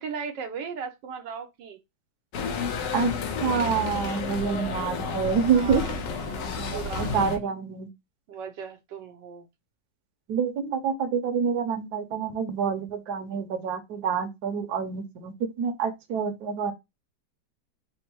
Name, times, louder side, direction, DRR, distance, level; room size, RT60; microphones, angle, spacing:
voice 1, 0.0-1.8 5.5-7.3 8.3-9.5, right 6 dB, 85° right, 1.4 m, -37 dB
sound 1, 2.3-7.4, left 5 dB, 75° left, 1.3 m, -31 dB
voice 2, 3.4-5.8 6.6-7.9 10.3-16.7, right 6 dB, 70° right, 1.2 m, -27 dB
4.2 x 2.0 x 4.4 m
omnidirectional pair, 1.9 m